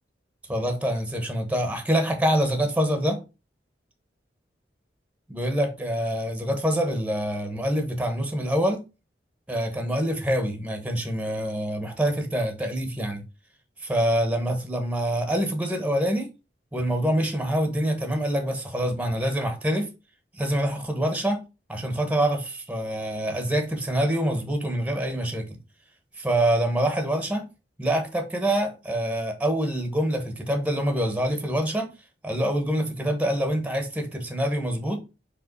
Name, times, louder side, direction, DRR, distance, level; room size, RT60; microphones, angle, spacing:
voice 1, 0.5-3.2 5.3-8.8 9.5-13.2 13.8-16.3 16.7-19.9 20.3-21.4 21.7-25.5 26.2-27.5 27.8-31.9 32.2-35.0, right 1 dB, 10° right, 1.1 m, -25 dB
4.9 x 3.6 x 5.3 m
head